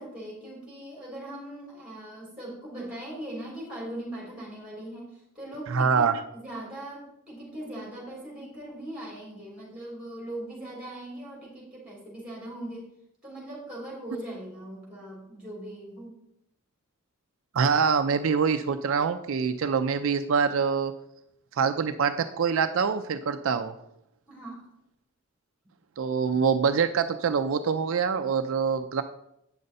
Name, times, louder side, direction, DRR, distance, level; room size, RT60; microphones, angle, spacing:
voice 1, 0.0-12.8 13.2-16.1 24.3-24.6, right 1 dB, 5° right, -4 dB, 3.6 m, -40 dB
voice 2, 5.7-6.2 17.5-20.9 21.5-23.7 26.0-29.0, right 6 dB, 60° right, 9 dB, 0.4 m, -25 dB
8.7 x 6.5 x 4.0 m, 0.80 s
head